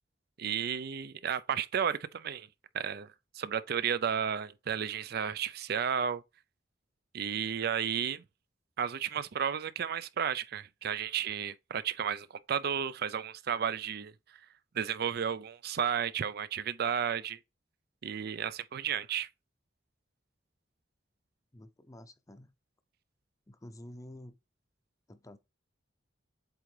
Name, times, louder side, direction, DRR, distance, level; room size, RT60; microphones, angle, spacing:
voice 1, 0.4-2.5 2.7-3.1 3.3-6.2 7.1-8.2 8.8-14.1 14.7-17.4 18.0-19.3, right 8 dB, 55° right, 0.5 m, -33 dB
voice 2, 21.5-22.5 23.5-24.3 25.1-25.4, left 1 dB, 20° left, 0.6 m, -49 dB
8.0 x 3.7 x 3.3 m
head